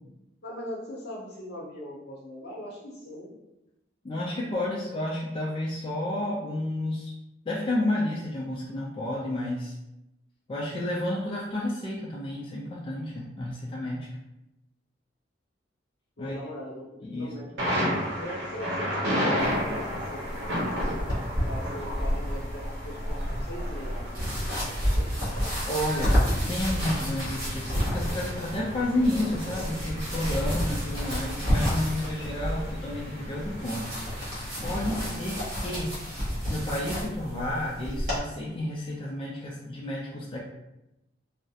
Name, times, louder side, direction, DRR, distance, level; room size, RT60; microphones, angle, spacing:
voice 1, 0.4-3.3 16.2-16.9 17.1-17.7 18.2-20.4 21.4-25.1, equal, 60° left, -3 dB, 0.7 m, -40 dB
voice 2, 4.0-7.1 7.5-9.8 10.5-14.1 16.2-16.4 17.0-17.3 25.7-33.9 34.2-36.0 36.5-40.4, left 1 dB, 30° left, -5 dB, 0.3 m, -31 dB
Thunder, 17.6-35.0, equal, 70° right, 0.7 m, -34 dB
sound 1, 19.4-38.2, equal, 50° right, 1.1 m, -30 dB
2.3 x 2.0 x 2.7 m, 0.90 s
head